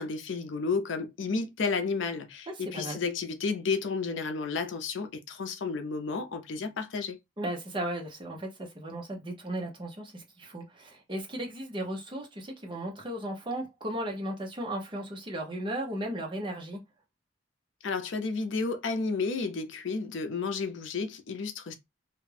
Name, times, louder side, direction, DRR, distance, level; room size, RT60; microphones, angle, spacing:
voice 1, 0.0-7.2 17.8-21.7, left 4 dB, 75° left, 0.5 m, -32 dB
voice 2, 2.5-3.0 7.4-16.8, right 1 dB, 25° right, 0.7 m, -36 dB
2.4 x 2.2 x 3.1 m
head